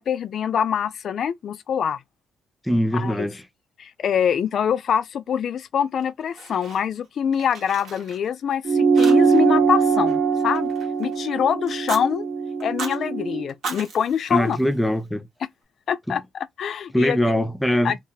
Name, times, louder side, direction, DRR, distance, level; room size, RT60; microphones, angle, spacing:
voice 1, 0.0-2.0 2.9-3.3 3.8-10.7 11.0-12.3 12.6-14.6 15.9-16.2 16.6-17.4 17.8-18.0, left 8 dB, 60° left, 0.3 m, -24 dB
voice 2, 2.6-3.4 14.3-15.3 16.1-16.2 16.9-18.0, equal, 5° left, 0.5 m, -22 dB
Fire, 6.0-7.1 7.3-8.5 9.0-9.5 9.8-11.2 11.7-12.0 12.6-13.0 13.5-15.1, right 4 dB, 70° right, 1.1 m, -36 dB
sound 1, 8.6-13.4, right 5 dB, 45° right, 0.5 m, -21 dB
2.3 x 2.0 x 3.8 m
cardioid pair, 90°, 0 cm